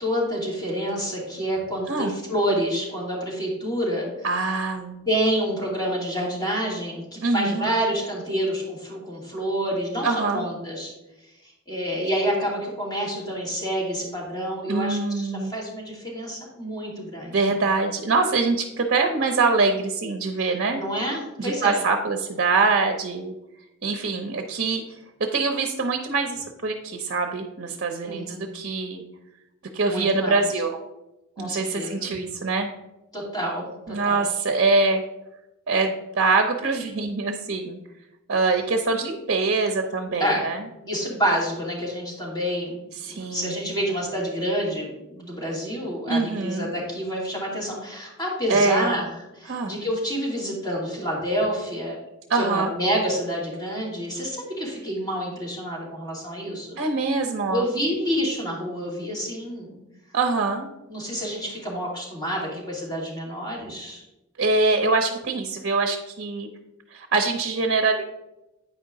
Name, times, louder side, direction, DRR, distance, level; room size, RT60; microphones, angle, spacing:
voice 1, 0.0-4.4 5.1-10.9 11.4-17.5 20.7-21.8 28.0-28.5 29.8-30.4 31.4-32.2 33.1-34.3 40.2-40.5 40.8-42.8 43.1-49.1 49.3-52.0 52.3-56.8 57.5-59.8 60.9-64.0, equal, 20° left, -5 dB, 2.6 m, -28 dB
voice 2, 4.2-5.1 7.2-7.7 10.0-10.5 14.7-15.5 17.3-20.8 21.4-23.3 23.8-24.8 25.3-29.0 29.7-30.8 31.4-32.7 33.9-35.0 35.7-37.8 38.3-40.6 43.0-43.7 46.1-46.7 48.5-49.0 49.5-49.7 52.3-52.8 56.8-57.7 60.1-60.7 64.4-66.5 66.9-68.0, right 3 dB, 55° right, 5 dB, 0.7 m, -24 dB
8.9 x 5.0 x 3.8 m, 0.97 s
head